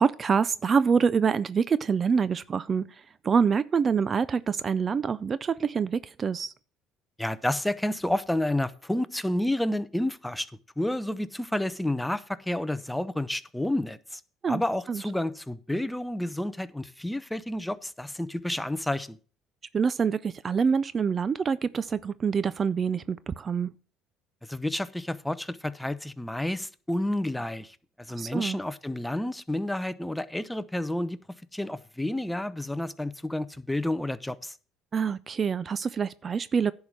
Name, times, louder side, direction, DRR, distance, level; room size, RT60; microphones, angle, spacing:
voice 1, 0.0-2.8 3.2-6.5 14.4-14.6 14.9-15.0 19.7-23.7 28.2-28.6 34.9-36.7, right 6 dB, 35° right, 0.4 m, -26 dB
voice 2, 7.2-10.5 10.8-14.2 14.5-19.2 24.4-31.2 31.5-34.5, left 1 dB, 5° left, 0.6 m, -30 dB
10.5 x 4.8 x 7.3 m
supercardioid pair, 90°, 0 cm